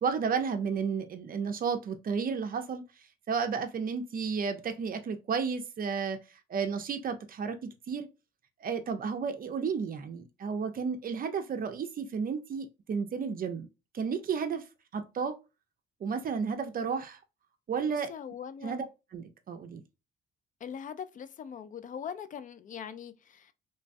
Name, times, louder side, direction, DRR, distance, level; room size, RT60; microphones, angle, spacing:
voice 1, 0.0-8.1 8.6-13.7 13.9-14.6 14.9-15.4 16.0-17.2 17.7-18.1 18.6-18.8 19.1-19.8, right 6 dB, 45° right, 0.5 m, -32 dB
voice 2, 17.8-18.8 20.6-23.5, left 8 dB, 40° left, 0.4 m, -41 dB
3.1 x 2.2 x 2.5 m
cardioid pair, 90°, 20 cm